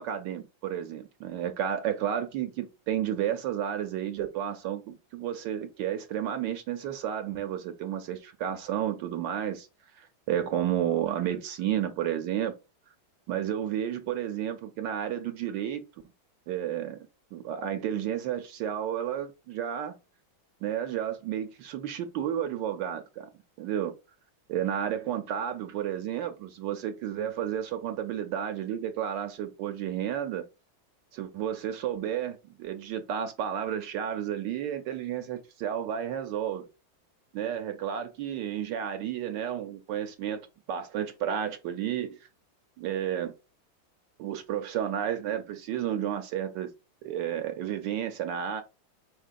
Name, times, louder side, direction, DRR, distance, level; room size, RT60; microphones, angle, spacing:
voice 1, 0.0-9.7 9.9-12.5 13.3-15.8 16.5-20.0 20.6-23.3 23.6-23.9 24.5-30.4 31.1-36.7 37.3-42.3 42.8-43.3 44.2-46.7 47.0-48.6, right 10 dB, 75° right, 1.2 m, -32 dB
5.1 x 3.7 x 2.4 m
omnidirectional pair, 2.2 m